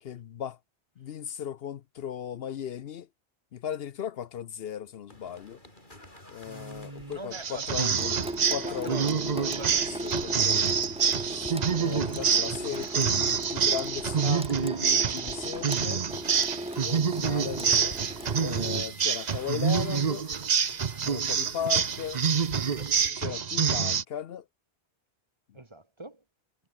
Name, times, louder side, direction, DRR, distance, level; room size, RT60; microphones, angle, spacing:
voice 1, 0.0-0.6 1.0-3.1 3.5-5.6 6.3-8.2 8.5-9.5 10.0-10.8 11.8-16.0 16.8-18.0 18.4-20.3 21.0-22.2 23.1-24.4, left 9 dB, 70° left, 0.9 m, -37 dB
sound 1, 5.1-23.1, left 1 dB, 50° left, 6.8 m, -50 dB
voice 2, 6.5-8.1 8.6-9.9 10.3-10.5 25.5-26.2, right 2 dB, 25° right, 1.5 m, -43 dB
sound 2, 7.3-24.0, right 7 dB, 45° right, 0.8 m, -27 dB
Water tap faucet / Sink (filling or washing) / Drip, 8.0-18.8, right 1 dB, 5° right, 1.0 m, -37 dB
omnidirectional pair, 1.1 m